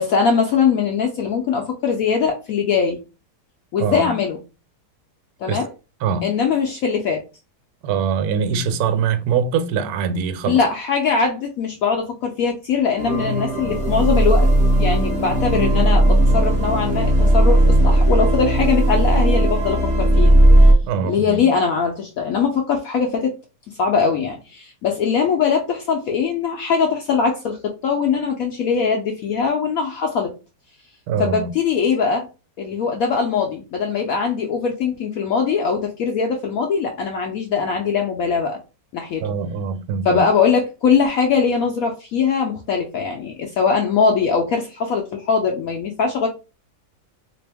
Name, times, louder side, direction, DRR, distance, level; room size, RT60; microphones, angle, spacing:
voice 1, 0.0-3.0 3.7-4.4 5.4-5.7 6.2-7.2 10.5-14.5 14.8-20.4 21.0-23.4 23.7-30.4 31.2-32.3 32.6-38.6 38.9-39.3 40.0-46.3, left 6 dB, 70° left, 0.9 m, -21 dB
voice 2, 3.8-4.1 5.5-5.6 6.0-6.3 7.8-10.6 20.8-21.5 31.1-31.5 39.2-40.2, right 6 dB, 70° right, 1.0 m, -23 dB
sound 1, 13.0-20.7, right 1 dB, 30° right, 0.8 m, -16 dB
3.4 x 2.9 x 3.4 m
omnidirectional pair, 1.9 m